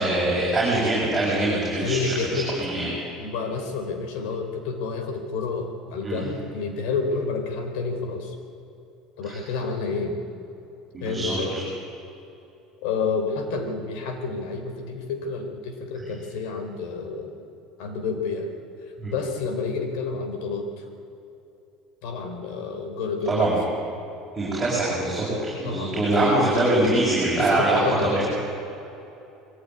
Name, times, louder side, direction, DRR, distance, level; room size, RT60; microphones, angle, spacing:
voice 1, 0.0-2.9 6.0-6.2 10.9-11.6 19.0-19.1 23.3-23.6 24.3-28.2, right 1 dB, 15° right, -8 dB, 7.3 m, -23 dB
voice 2, 1.8-8.4 9.2-10.2 11.0-11.6 12.8-17.4 17.8-18.5 19.0-20.9 22.0-23.5 25.6-26.6 27.3-28.1, left 4 dB, 80° left, 5 dB, 3.9 m, -29 dB
22.5 x 16.0 x 9.8 m, 2.8 s
cardioid pair, 135°, 0 cm